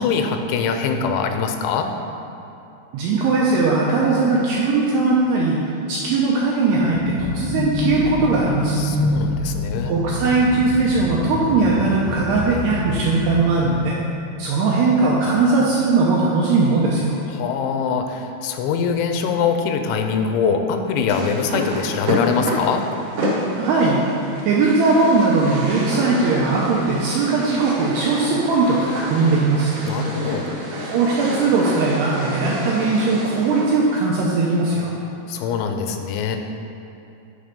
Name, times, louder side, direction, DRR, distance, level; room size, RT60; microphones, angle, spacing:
voice 1, 0.0-1.9 8.8-9.9 17.3-22.9 29.9-30.5 35.3-36.4, left 6 dB, 90° left, 6 dB, 3.0 m, -23 dB
voice 2, 2.9-5.6 5.9-8.8 9.9-14.0 14.4-17.2 23.6-24.0 24.5-29.7 30.8-34.9, right 3 dB, 80° right, -4 dB, 2.3 m, -19 dB
sound 1, 6.7-13.4, left 2 dB, 65° left, 2.3 m, -26 dB
sound 2, 21.1-33.9, equal, 65° right, 2.2 m, -29 dB
9.5 x 4.3 x 5.1 m, 2.8 s
omnidirectional pair, 5.4 m